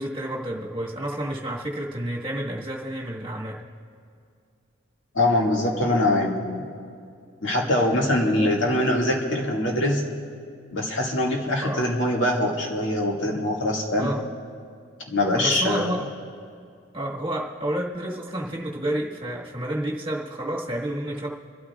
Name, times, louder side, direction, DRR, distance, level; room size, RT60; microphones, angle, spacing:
voice 1, 0.0-3.6 8.3-8.6 11.6-11.8 14.0-14.2 15.3-16.0 16.9-21.3, right 1 dB, 25° right, -3 dB, 1.6 m, -30 dB
voice 2, 5.1-6.6 7.4-10.0 10.7-14.1 15.1-16.0, left 1 dB, 70° left, -2 dB, 2.1 m, -23 dB
27.0 x 13.0 x 2.4 m, 2.3 s
head